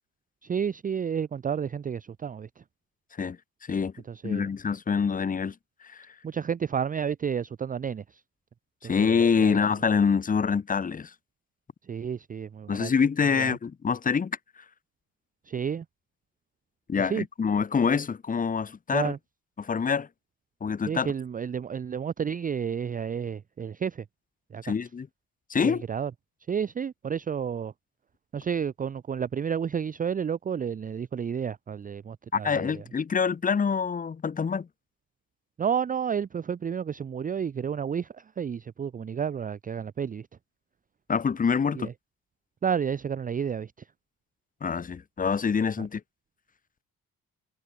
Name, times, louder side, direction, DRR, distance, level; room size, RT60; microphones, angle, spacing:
voice 1, 0.4-2.6 4.1-4.5 6.2-8.2 8.8-9.6 11.8-12.9 13.3-13.5 15.5-15.9 17.0-17.3 18.9-19.2 20.9-24.0 24.5-24.7 25.6-26.1 26.5-27.7 28.3-32.8 35.6-40.3 41.7-41.9 42.6-43.9 45.8-45.9, right 7 dB, 25° right, 0.5 m, -31 dB
voice 2, 4.2-5.5 5.8-6.1 8.8-11.1 12.7-14.4 16.9-19.1 19.6-20.1 20.6-21.1 24.6-25.1 25.5-25.8 32.3-34.7 41.1-41.9 44.6-46.0, left 6 dB, 25° left, 1.0 m, -26 dB
cardioid pair, 140°, 33 cm